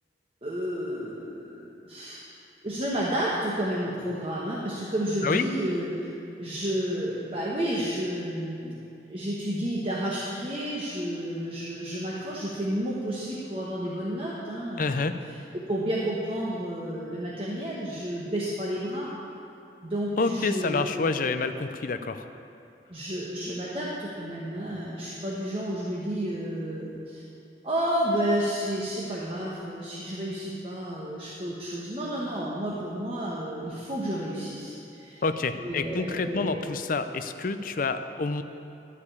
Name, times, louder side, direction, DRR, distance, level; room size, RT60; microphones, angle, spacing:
voice 1, 0.4-2.2 2.6-6.1 6.4-8.8 9.1-15.1 15.5-19.1 19.8-20.8 21.2-21.4 22.9-27.2 27.6-35.2 35.6-36.6, equal, 30° right, -6 dB, 1.2 m, -31 dB
voice 2, 14.8-15.1 20.2-22.3 35.2-38.4, left 3 dB, 50° left, 9 dB, 0.5 m, -28 dB
13.0 x 5.0 x 8.4 m, 2.8 s
head